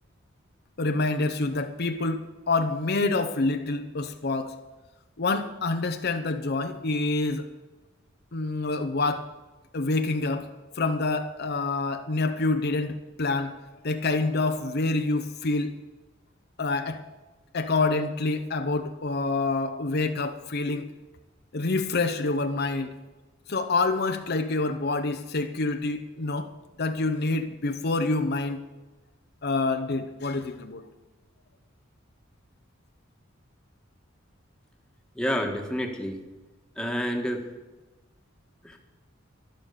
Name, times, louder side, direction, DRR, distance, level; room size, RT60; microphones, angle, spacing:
voice 1, 0.8-4.5 5.2-7.5 8.3-9.2 9.7-10.5 10.8-13.6 13.8-15.7 16.6-17.0 17.5-20.9 21.5-22.9 23.5-26.5 26.8-28.6 29.4-30.8, left 3 dB, 55° left, 7 dB, 0.8 m, -27 dB
voice 2, 35.1-36.2 36.8-37.4 38.6-38.8, equal, 5° left, 2 dB, 1.5 m, -29 dB
12.0 x 11.5 x 6.7 m, 1.1 s
head